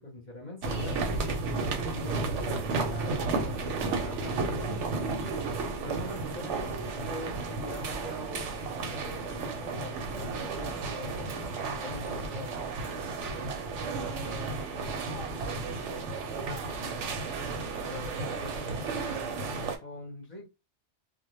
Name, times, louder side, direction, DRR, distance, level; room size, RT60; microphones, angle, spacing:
voice 1, 0.0-0.9 1.9-5.0 5.8-11.4 11.8-12.6 17.8-20.5, left 2 dB, 45° left, 0.7 m, -43 dB
voice 2, 0.6-1.7 14.1-16.9, right 3 dB, 35° right, 0.5 m, -46 dB
sound 1, 0.6-19.8, right 3 dB, 85° right, 0.9 m, -33 dB
2.1 x 2.1 x 2.9 m
omnidirectional pair, 1.2 m